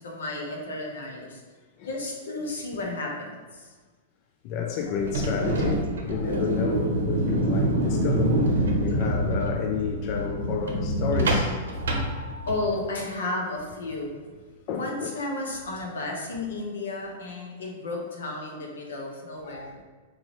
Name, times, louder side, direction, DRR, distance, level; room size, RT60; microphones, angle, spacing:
voice 1, 0.0-1.4 1.8-3.7 8.9-9.1 12.5-14.2 14.7-19.7, left 2 dB, 85° left, 0 dB, 0.9 m, -33 dB
voice 2, 4.4-12.4 14.7-15.1 19.4-19.8, left 6 dB, 45° left, 2 dB, 0.3 m, -31 dB
sound 1, 5.0-12.8, right 1 dB, 85° right, 0.7 m, -26 dB
4.5 x 2.6 x 3.0 m, 1.4 s
hypercardioid pair, 120°, 0 cm